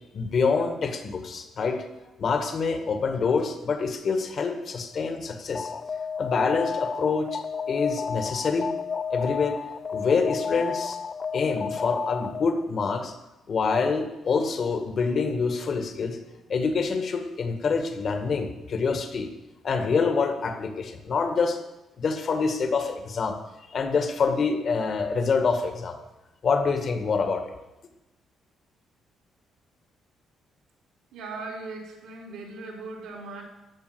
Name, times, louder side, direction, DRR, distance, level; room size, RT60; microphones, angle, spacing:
voice 1, 0.1-1.8 2.2-5.7 6.2-7.4 7.7-8.7 9.1-9.6 9.9-11.0 11.3-13.2 13.5-16.2 16.5-19.3 19.6-21.6 22.0-23.4 23.7-26.0 26.4-27.4, left 4 dB, 55° left, 6 dB, 2.0 m, -26 dB
Alarm, 5.5-12.6, left 6 dB, 35° left, 0.4 m, -31 dB
voice 2, 31.1-33.4, right 3 dB, 90° right, -2 dB, 3.9 m, -38 dB
14.5 x 5.9 x 9.6 m, 0.99 s
cardioid pair, 90°, 0 cm